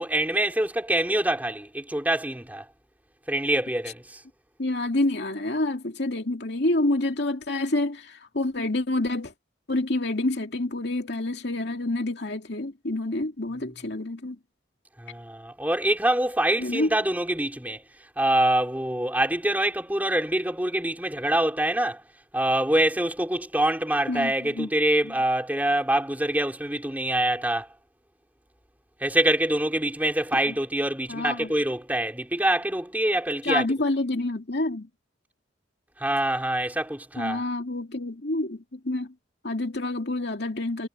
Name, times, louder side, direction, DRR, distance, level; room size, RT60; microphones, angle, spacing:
voice 1, 0.0-2.6 3.3-4.2 15.0-17.8 18.2-22.0 22.3-27.7 29.0-33.7 36.0-37.4, right 1 dB, 10° right, 3.9 m, -25 dB
voice 2, 4.6-9.3 9.7-14.4 16.6-16.9 24.1-24.7 25.0-25.1 30.5-30.6 31.1-31.6 33.4-34.9 37.2-39.1 39.4-40.9, left 2 dB, 60° left, 2.4 m, -28 dB
head